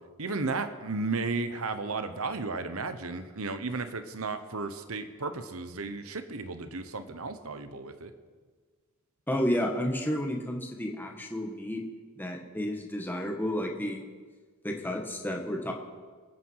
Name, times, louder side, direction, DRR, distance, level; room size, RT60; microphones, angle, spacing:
voice 1, 0.2-8.1, right 3 dB, 70° right, 9 dB, 1.1 m, -34 dB
voice 2, 9.3-11.8 12.2-14.0 14.6-15.7, equal, 10° left, 1 dB, 1.7 m, -31 dB
25.5 x 9.6 x 4.8 m, 1.5 s
head